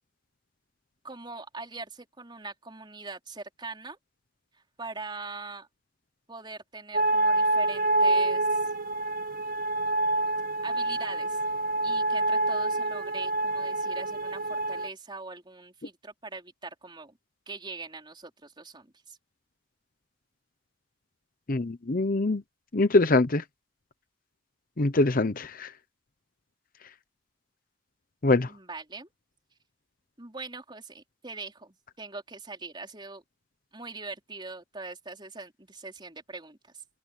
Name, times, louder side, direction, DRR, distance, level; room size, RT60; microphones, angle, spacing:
voice 1, 1.0-4.0 4.8-5.7 6.3-8.6 10.6-11.4 11.8-17.1 17.5-19.2 28.5-29.1 30.2-33.2 33.7-36.6, right 3 dB, 25° right, 4.4 m, -42 dB
sound 1, 6.9-14.9, right 2 dB, 45° right, 1.5 m, -27 dB
voice 2, 21.5-22.4 22.7-23.4 24.8-25.7 28.2-28.5, left 2 dB, 45° left, 0.8 m, -23 dB
head